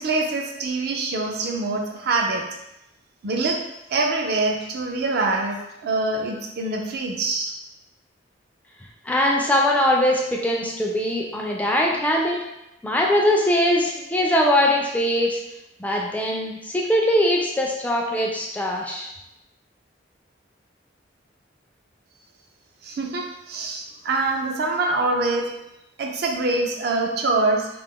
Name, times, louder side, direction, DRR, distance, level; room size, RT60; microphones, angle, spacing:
voice 1, 0.0-2.4 3.2-3.6 3.9-7.5 22.8-25.5 26.0-27.7, right 3 dB, 60° right, 1 dB, 0.4 m, -24 dB
voice 2, 9.0-12.4 12.8-15.4 15.8-19.1, left 1 dB, 10° left, -1 dB, 0.3 m, -21 dB
2.4 x 2.0 x 3.6 m, 0.87 s
head